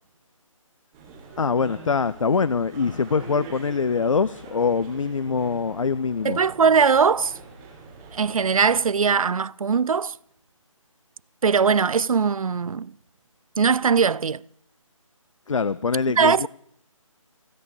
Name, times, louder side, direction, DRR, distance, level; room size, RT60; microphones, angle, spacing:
sound 1, 0.9-8.8, right 4 dB, 5° right, 1.3 m, -44 dB
voice 1, 1.4-6.4 15.5-16.5, left 5 dB, 65° left, 0.5 m, -24 dB
voice 2, 6.2-7.4 8.1-10.1 11.4-12.9 13.6-14.4 16.2-16.5, right 6 dB, 80° right, 0.4 m, -20 dB
15.5 x 8.4 x 6.9 m
figure-of-eight pair, 175°, 18 cm